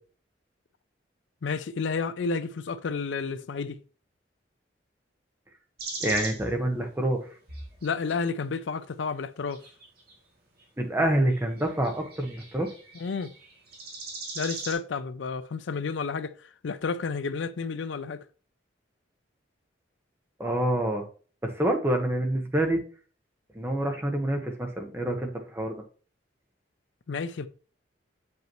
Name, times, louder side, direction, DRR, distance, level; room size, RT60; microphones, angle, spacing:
voice 1, 1.4-3.8 7.8-9.6 13.0-13.3 14.4-18.2 27.1-27.5, left 5 dB, 75° left, 0.4 m, -31 dB
sound 1, 5.8-6.6 7.5-8.1 9.5-10.1 11.3-14.7, right 3 dB, 55° right, 1.6 m, -39 dB
voice 2, 6.0-7.2 10.8-12.7 20.4-21.1 21.4-22.8 23.5-25.7, right 1 dB, 15° right, 1.1 m, -27 dB
7.8 x 5.3 x 3.0 m
head